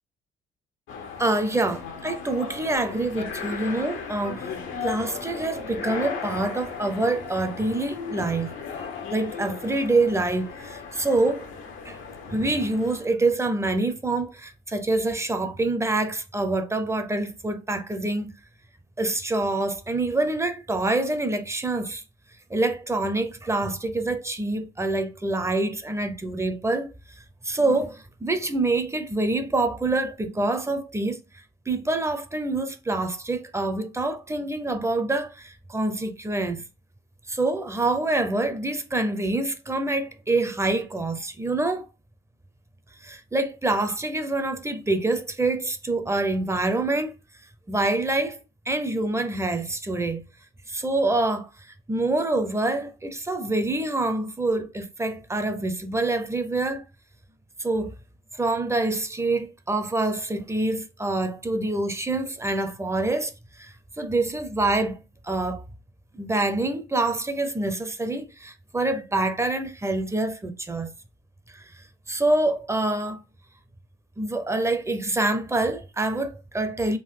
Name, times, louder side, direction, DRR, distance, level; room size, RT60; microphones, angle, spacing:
sound 1, 0.9-13.1, left 6 dB, 80° left, 0.9 m, -36 dB
voice 1, 1.2-8.5 9.1-11.5 11.9-12.0 12.3-18.3 19.0-22.0 22.5-26.9 27.4-31.2 31.7-36.6 37.3-41.9 43.0-47.1 47.7-48.4 48.7-50.2 50.7-51.5 51.9-56.8 57.6-57.9 58.3-63.3 63.6-65.6 66.1-70.9 71.5-71.7 72.1-73.2 74.2-77.0, right 2 dB, 15° right, 0.6 m, -26 dB
3.8 x 2.3 x 3.7 m
cardioid pair, 90°, 20 cm